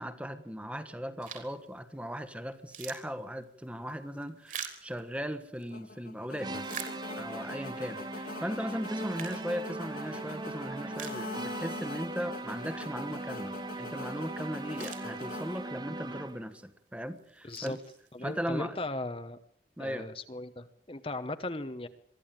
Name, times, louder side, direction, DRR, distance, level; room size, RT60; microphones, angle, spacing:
voice 1, 0.0-6.8 7.2-17.8 18.2-18.8 19.8-20.1, equal, 5° right, 11 dB, 1.4 m, -38 dB
sound 1, 1.2-1.7 2.1-2.2 2.5-5.7 6.2-7.5 8.0-8.1 8.8-10.2 10.6-10.7 10.9-11.8 12.1-12.2 14.2-14.3 14.5-15.7 16.3-16.6 17.2-18.4, right 8 dB, 45° right, 3.5 m, -45 dB
sound 2, 5.7-16.2, left 3 dB, 50° left, 0.8 m, -45 dB
sound 3, 6.4-16.5, right 2 dB, 25° right, 0.9 m, -39 dB
voice 2, 17.4-17.8 18.1-19.4 19.8-21.9, left 2 dB, 30° left, 10 dB, 1.1 m, -37 dB
23.0 x 14.0 x 9.0 m, 0.65 s
head